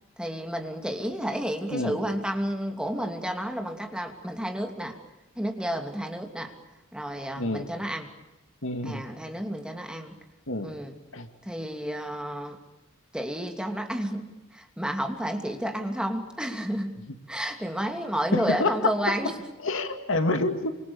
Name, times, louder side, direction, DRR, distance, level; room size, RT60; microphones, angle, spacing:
voice 1, 0.2-5.0 5.4-6.5 6.9-8.1 8.8-10.1 10.6-10.9 11.4-12.6 13.1-14.3 14.5-16.9 17.3-19.3, equal, 5° right, 4 dB, 2.8 m, -31 dB
voice 2, 1.7-2.0 7.4-7.7 8.6-9.0 10.5-10.7 11.1-11.3 18.3-18.9 19.6-20.7, left 2 dB, 70° left, 7 dB, 2.5 m, -27 dB
28.0 x 26.5 x 7.2 m, 1.0 s
head